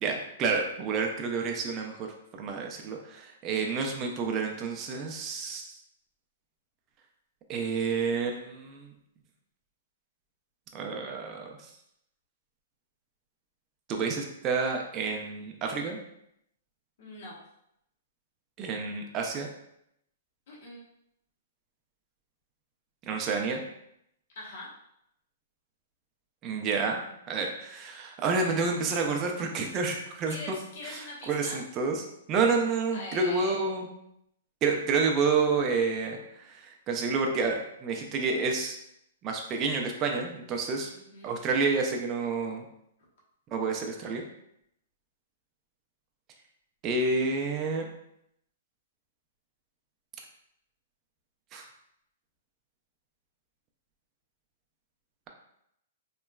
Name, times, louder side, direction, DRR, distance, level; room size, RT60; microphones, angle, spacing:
voice 1, 0.0-2.1 2.4-5.7 7.5-8.9 10.7-11.5 13.9-16.0 18.6-19.5 23.1-23.6 26.4-30.4 31.3-32.0 32.3-33.9 34.6-38.8 39.2-40.9 41.2-42.6 43.5-44.2 46.8-47.9 51.5-51.7, right 4 dB, 25° right, 2 dB, 0.3 m, -29 dB
voice 2, 17.0-17.4 20.5-20.8 24.3-24.7 29.9-31.6 32.9-33.7 40.8-41.3, left 2 dB, 55° left, -4 dB, 0.9 m, -43 dB
2.9 x 2.1 x 2.2 m, 0.76 s
hypercardioid pair, 155°, 0 cm